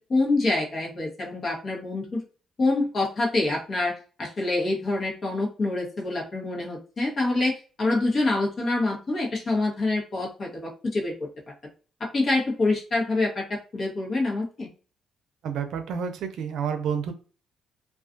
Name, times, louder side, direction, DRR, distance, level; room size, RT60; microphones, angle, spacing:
voice 1, 0.1-2.2 2.6-11.3 12.0-14.7, left 2 dB, 45° left, -2 dB, 1.0 m, -26 dB
voice 2, 15.4-17.1, right 7 dB, 80° right, 7 dB, 0.5 m, -29 dB
2.4 x 2.3 x 2.5 m, 0.38 s
cardioid pair, 90°, 0 cm